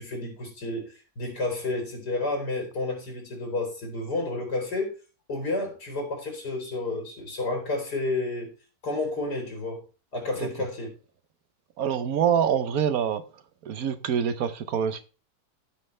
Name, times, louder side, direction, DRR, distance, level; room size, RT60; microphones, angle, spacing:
voice 1, 0.0-5.0 5.3-8.5 8.8-9.8 10.1-10.9, left 2 dB, 90° left, 4.0 m, -31 dB
voice 2, 11.8-13.2 13.6-15.1, right 8 dB, 65° right, 1.2 m, -25 dB
15.0 x 5.6 x 3.2 m
omnidirectional pair, 1.7 m